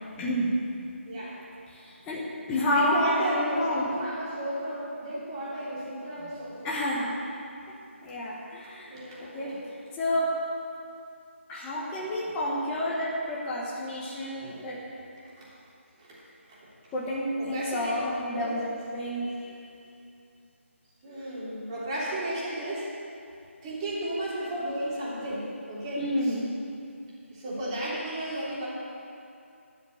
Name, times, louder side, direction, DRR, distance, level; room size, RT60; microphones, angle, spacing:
voice 1, 0.2-0.5 1.7-3.9 6.6-7.1 8.0-9.5 9.9-10.3 11.5-14.8 16.9-19.6 26.0-26.5, left 1 dB, 10° left, -6 dB, 1.3 m, -30 dB
voice 2, 1.1-1.4 2.6-6.7 8.8-9.6 15.4-15.5 16.0-16.2 16.5-16.7 17.4-18.0 18.3-18.5 21.0-22.9 23.6-26.3 27.3-28.7, right 1 dB, 20° right, -8 dB, 3.2 m, -33 dB
13.0 x 6.2 x 9.4 m, 2.6 s
figure-of-eight pair, 165°, 7 cm